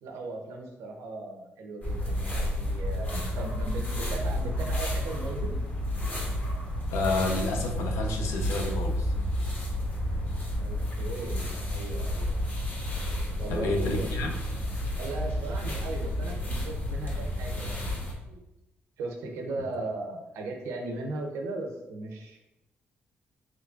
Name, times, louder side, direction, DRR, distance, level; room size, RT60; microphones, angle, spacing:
voice 1, 0.0-5.6 10.0-12.4 13.4-14.1 15.0-18.0 18.3-18.4 19.0-22.4, right 2 dB, 90° right, 2 dB, 0.6 m, -38 dB
sound 1, 1.8-18.1, left 1 dB, 40° left, 1.0 m, -31 dB
voice 2, 6.9-9.1 13.5-14.3, left 2 dB, 85° left, 2 dB, 0.6 m, -30 dB
3.8 x 3.1 x 2.3 m, 0.98 s
supercardioid pair, 65°, 5 cm